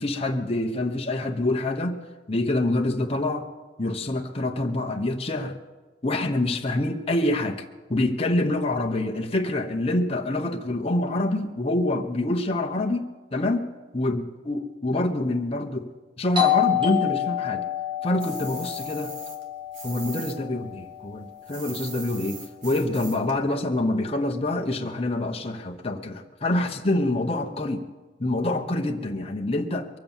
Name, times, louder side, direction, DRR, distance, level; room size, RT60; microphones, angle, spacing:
voice 1, 0.0-2.0 2.3-3.5 3.8-5.5 6.0-13.7 13.9-15.9 16.2-17.6 18.0-19.1 19.8-27.9 28.2-29.9, left 2 dB, 35° left, 3 dB, 0.9 m, -26 dB
Doorbell, 16.4-21.7, left 11 dB, 30° right, 1.3 m, -28 dB
sound 1, 18.2-20.4 20.6-23.3, right 5 dB, 75° right, 2.0 m, -41 dB
22.5 x 7.7 x 7.1 m, 1.2 s
head